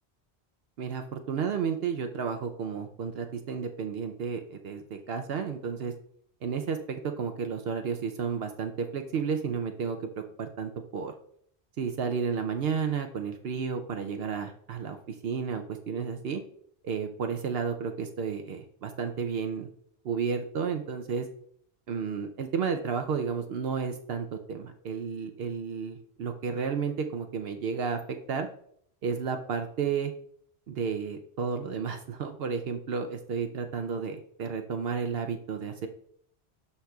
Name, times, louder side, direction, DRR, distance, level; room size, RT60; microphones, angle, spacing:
voice 1, 0.8-5.9 6.4-11.1 11.8-16.4 16.8-19.7 20.0-21.3 21.9-28.0 28.3-28.5 29.0-30.1 30.7-35.9, right 6 dB, 70° right, 6 dB, 0.8 m, -32 dB
12.5 x 4.2 x 2.3 m, 0.64 s
omnidirectional pair, 1.1 m